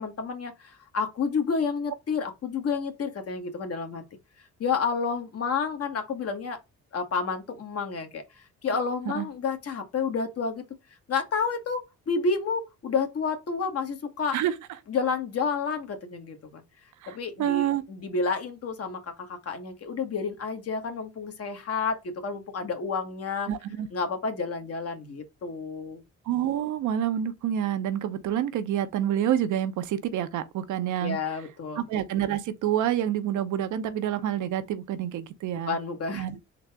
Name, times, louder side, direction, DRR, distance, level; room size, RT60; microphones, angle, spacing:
voice 1, 0.0-4.0 4.6-6.6 6.9-10.6 11.1-14.4 14.9-16.6 17.1-23.5 23.9-26.0 31.0-31.8 35.7-36.3, left 5 dB, 50° left, 1.2 m, -30 dB
voice 2, 17.0-17.8 23.5-23.9 26.3-31.2 31.8-35.8 36.1-36.4, right 10 dB, 80° right, 0.7 m, -28 dB
3.9 x 2.8 x 3.4 m
cardioid pair, 90°, 30 cm